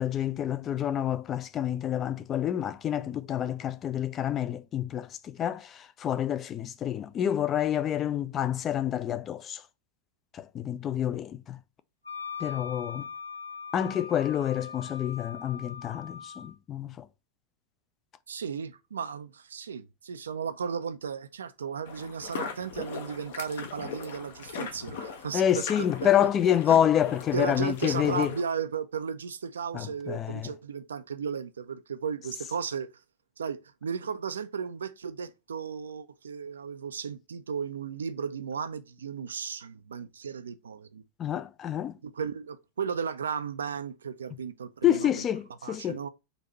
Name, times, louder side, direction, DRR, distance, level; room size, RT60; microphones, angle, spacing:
voice 1, 0.0-9.6 10.3-11.6 12.4-13.1 13.7-17.0 25.3-28.3 29.7-30.5 41.2-41.9 44.8-46.0, left 10 dB, 30° left, 0.4 m, -28 dB
Wind instrument woodwind instrument, 12.1-16.5, left 6 dB, 90° left, 0.5 m, -41 dB
voice 2, 18.3-25.6 26.7-26.9 27.3-32.9 33.4-41.0 42.0-45.3 45.6-46.1, right 6 dB, 70° right, 0.4 m, -35 dB
sound 1, 21.8-28.4, left 6 dB, 55° left, 0.7 m, -39 dB
3.9 x 2.7 x 4.5 m
figure-of-eight pair, 90°, 0 cm